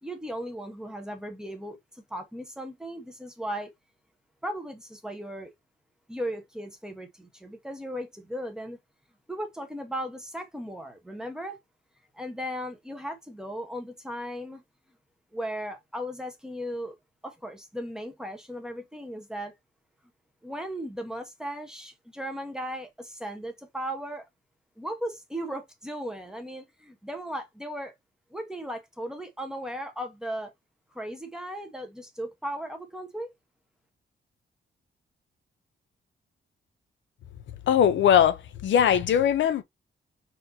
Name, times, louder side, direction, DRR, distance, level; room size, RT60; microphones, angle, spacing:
voice 1, 0.0-3.7 4.4-5.5 6.1-8.8 9.3-11.6 12.1-14.6 15.3-17.0 17.2-19.5 20.4-24.2 24.8-27.9 28.3-30.5 30.9-33.3, equal, 5° right, 0.8 m, -36 dB
voice 2, 37.5-39.6, left 9 dB, 75° left, 0.5 m, -21 dB
4.2 x 2.6 x 2.6 m
wide cardioid pair, 145°, 19 cm